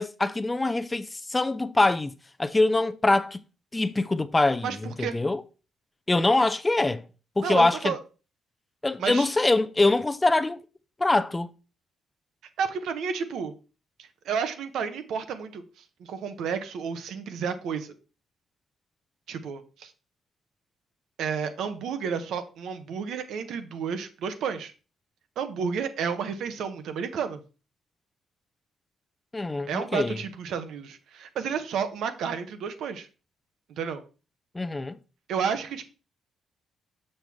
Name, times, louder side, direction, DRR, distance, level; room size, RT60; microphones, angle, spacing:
voice 1, 0.0-2.1 2.4-3.4 3.7-5.4 6.1-7.0 7.4-7.9 8.8-10.6 11.0-11.5 29.3-30.2 34.5-35.0, left 2 dB, 15° left, 0.5 m, -24 dB
voice 2, 4.6-5.2 7.4-8.0 9.0-9.3 12.6-13.5 14.2-15.6 16.1-17.9 19.3-19.9 21.2-24.7 25.4-27.4 29.7-33.1 33.8-34.0 35.3-35.8, right 6 dB, 75° right, 0.9 m, -31 dB
6.5 x 6.0 x 3.5 m
cardioid pair, 90°, 0 cm